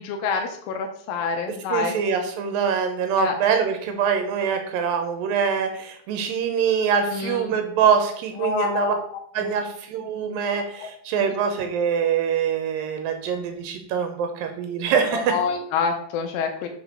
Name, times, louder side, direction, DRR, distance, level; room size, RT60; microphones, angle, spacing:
voice 1, 0.0-2.0 3.2-3.4 7.1-7.6 8.4-9.0 9.4-9.5 10.3-10.9 15.1-16.7, left 5 dB, 85° left, 4 dB, 2.5 m, -27 dB
voice 2, 1.7-8.9 9.3-15.4, right 7 dB, 85° right, 5 dB, 2.5 m, -24 dB
5.8 x 5.2 x 6.2 m, 0.66 s
omnidirectional pair, 4.1 m